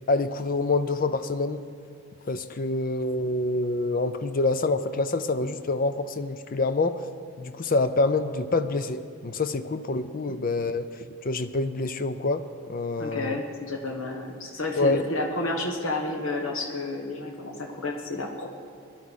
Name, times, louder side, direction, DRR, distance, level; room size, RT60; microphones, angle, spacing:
voice 1, 0.1-1.6 2.3-7.0 7.4-13.4 14.8-15.0, left 2 dB, 40° left, 11 dB, 0.5 m, -26 dB
voice 2, 13.0-18.5, left 2 dB, 65° left, 2 dB, 1.3 m, -31 dB
19.0 x 11.5 x 4.1 m, 2.6 s
head